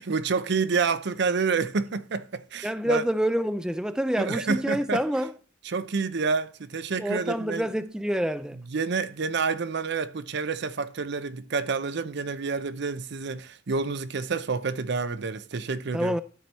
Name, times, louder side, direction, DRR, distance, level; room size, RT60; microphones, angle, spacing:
voice 1, 0.0-3.0 4.2-5.0 5.6-7.7 8.7-16.2, right 4 dB, 60° right, 0.6 m, -28 dB
voice 2, 2.6-5.3 7.0-8.6 15.9-16.2, equal, 5° right, 0.4 m, -27 dB
13.0 x 4.5 x 4.1 m
head